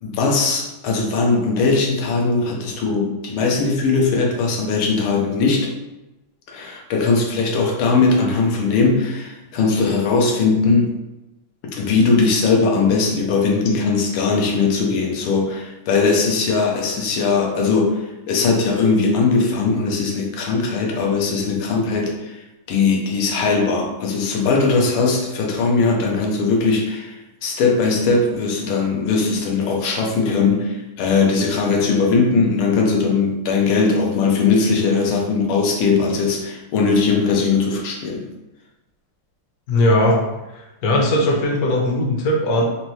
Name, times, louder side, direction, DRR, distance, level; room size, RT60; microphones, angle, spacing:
voice 1, 0.0-5.7 6.5-10.9 11.7-38.3, left 4 dB, 85° left, 0 dB, 1.6 m, -19 dB
voice 2, 39.7-40.2 40.8-42.6, left 1 dB, 60° left, -1 dB, 1.0 m, -18 dB
4.3 x 2.7 x 3.0 m, 1.0 s
omnidirectional pair, 2.3 m